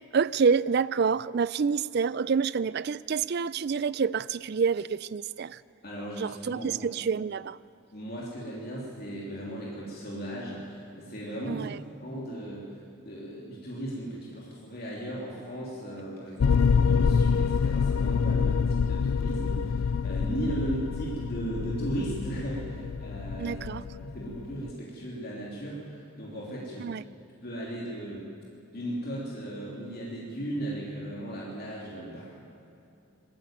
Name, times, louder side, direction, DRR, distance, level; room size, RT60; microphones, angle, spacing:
voice 1, 0.1-5.6 6.2-7.6 11.4-11.8 23.4-23.8 26.8-27.0, right 5 dB, 50° right, 0.4 m, -27 dB
voice 2, 5.8-6.9 7.9-11.7 12.0-23.6 24.0-26.9 27.4-28.3 28.7-32.4, right 1 dB, 45° left, 3.2 m, -36 dB
sound 1, 16.4-24.7, left 6 dB, 75° left, 0.4 m, -26 dB
20.0 x 14.5 x 9.2 m
head